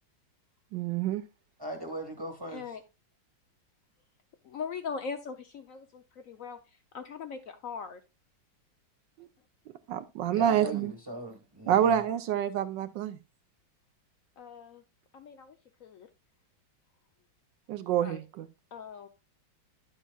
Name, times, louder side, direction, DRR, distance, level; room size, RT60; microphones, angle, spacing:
voice 1, 0.7-1.2 9.2-9.3 9.9-10.9 11.7-13.2 17.7-18.5, right 10 dB, 75° right, 1.2 m, -27 dB
voice 2, 1.6-2.7 10.3-12.0, right 1 dB, 15° right, 1.0 m, -39 dB
voice 3, 2.5-2.8 4.4-6.6 6.9-8.0 14.4-14.8 15.1-16.1 18.0-18.2 18.7-19.1, left 5 dB, 70° left, 0.8 m, -40 dB
11.0 x 7.2 x 2.3 m
omnidirectional pair, 2.1 m